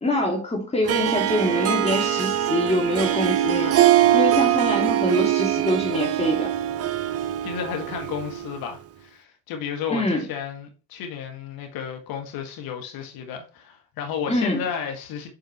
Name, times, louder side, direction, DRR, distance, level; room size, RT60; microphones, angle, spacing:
voice 1, 0.0-6.5 9.9-10.2 14.3-14.6, left 1 dB, 15° left, 2.5 m, -25 dB
Harp, 0.8-8.6, right 12 dB, 35° right, 0.7 m, -22 dB
voice 2, 7.4-15.3, left 7 dB, 55° left, 1.6 m, -32 dB
7.8 x 4.6 x 3.2 m
figure-of-eight pair, 55°, 42 cm